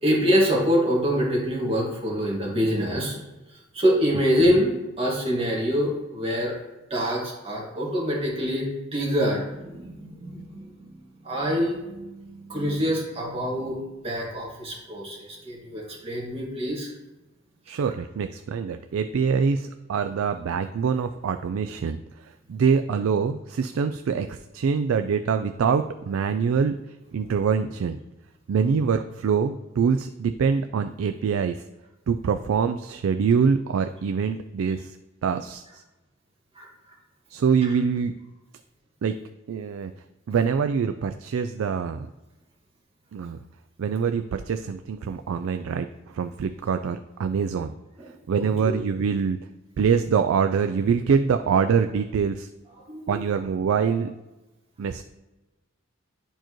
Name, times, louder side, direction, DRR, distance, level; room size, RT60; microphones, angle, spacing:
voice 1, 0.0-3.2 3.7-4.7 5.0-6.5 6.9-10.7 11.2-13.8 14.0-16.9 36.6-36.7 48.0-48.1 48.4-48.8 52.9-53.1, equal, 30° right, -4 dB, 1.9 m, -25 dB
voice 2, 17.7-26.8 27.1-28.0 28.5-31.6 32.1-35.0 35.2-35.8 37.3-38.1 39.0-39.2 39.5-39.9 40.3-42.1 43.1-43.4 43.8-47.7 48.3-49.4 49.8-52.5 53.1-54.1 54.8-55.0, right 6 dB, 75° right, 8 dB, 0.3 m, -24 dB
10.5 x 4.5 x 3.0 m, 1.0 s
head